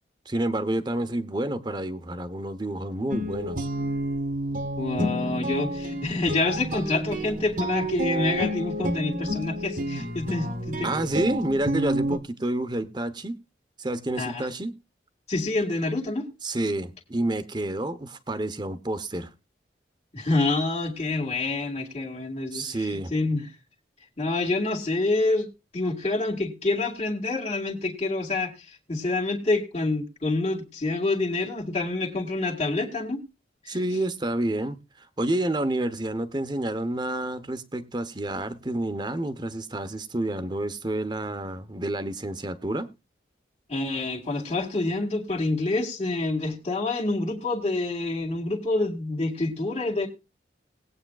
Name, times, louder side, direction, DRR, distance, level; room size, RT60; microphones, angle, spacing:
voice 1, 0.3-3.7 10.8-13.4 13.8-14.7 16.4-19.3 22.5-23.1 33.7-42.9, right 1 dB, 25° right, 0.9 m, -29 dB
Guitar, 3.1-12.2, right 1 dB, 45° right, 1.2 m, -30 dB
voice 2, 4.8-10.9 14.2-14.5 15.3-16.3 20.1-23.5 24.2-25.5 25.7-33.2 33.6-33.8 43.7-50.1, left 2 dB, 35° left, 2.1 m, -27 dB
19.5 x 8.7 x 2.4 m
head